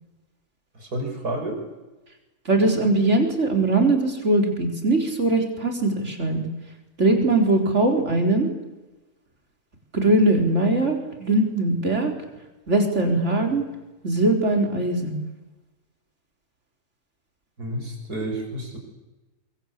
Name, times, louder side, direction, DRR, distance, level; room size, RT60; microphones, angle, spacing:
voice 1, 0.7-1.6 17.6-18.8, right 1 dB, 80° right, 3 dB, 6.7 m, -30 dB
voice 2, 2.5-6.4 7.0-8.5 9.9-12.1 12.7-13.6 14.0-15.2, right 2 dB, 50° right, 3 dB, 4.6 m, -21 dB
24.0 x 23.5 x 8.5 m, 1.1 s
omnidirectional pair, 1.6 m